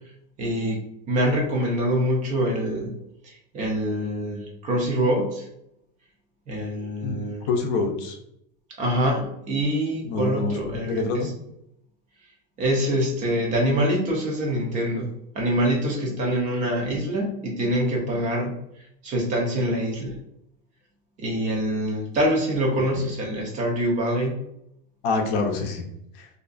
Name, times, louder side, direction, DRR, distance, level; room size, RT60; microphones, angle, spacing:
voice 1, 0.4-3.0 3.2-5.5 6.5-7.4 8.8-11.3 12.6-18.5 19.0-20.2 21.2-24.4, equal, 25° right, 0 dB, 0.5 m, -25 dB
voice 2, 7.5-8.2 10.0-11.3 22.9-23.0 25.0-25.8 26.2-26.3, left 3 dB, 50° left, 3 dB, 0.5 m, -26 dB
2.5 x 2.3 x 2.4 m, 0.77 s
supercardioid pair, 160°, 29 cm